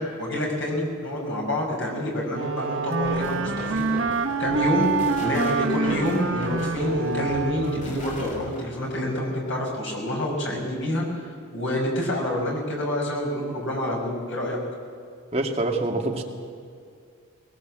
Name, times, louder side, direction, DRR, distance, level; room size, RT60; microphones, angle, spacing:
voice 1, 0.0-4.9 5.2-14.6, left 1 dB, 60° left, -1 dB, 6.0 m, -27 dB
Wind instrument woodwind instrument, 2.3-8.1, right 4 dB, 65° right, 1.0 m, -27 dB
sound 1, 3.0-8.7, left 1 dB, 40° left, 3.5 m, -37 dB
voice 2, 15.3-16.2, right 2 dB, 30° right, 1 dB, 2.2 m, -25 dB
21.0 x 19.5 x 7.7 m, 2.2 s
head